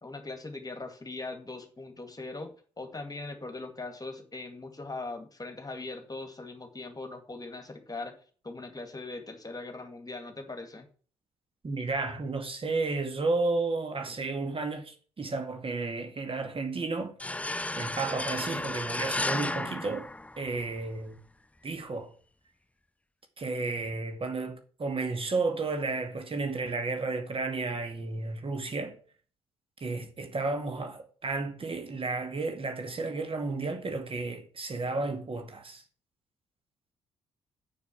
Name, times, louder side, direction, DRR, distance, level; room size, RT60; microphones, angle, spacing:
voice 1, 0.0-8.2 8.4-10.9, left 3 dB, 25° left, 2.1 m, -40 dB
voice 2, 11.6-17.1 17.8-21.2 21.6-22.1 23.4-29.0 29.8-35.8, right 3 dB, 35° right, 2.1 m, -32 dB
sound 1, 17.2-20.8, left 2 dB, 10° left, 0.5 m, -33 dB
7.0 x 6.9 x 7.1 m
hypercardioid pair, 40°, 15 cm